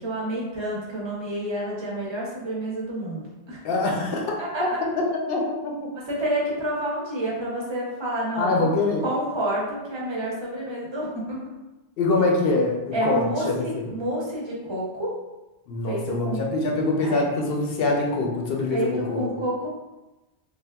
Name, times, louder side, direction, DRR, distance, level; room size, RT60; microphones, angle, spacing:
voice 1, 0.0-3.6 4.4-4.8 6.1-8.7 9.0-11.4 12.9-15.2 15.9-16.4 17.0-17.3 18.7-19.7, right 1 dB, 30° right, -4 dB, 0.6 m, -29 dB
voice 2, 3.6-4.4 5.0-5.9 8.4-9.0 12.0-13.8 15.7-19.4, left 3 dB, 65° left, 0 dB, 0.7 m, -24 dB
3.3 x 2.3 x 2.2 m, 1.0 s
omnidirectional pair, 1.1 m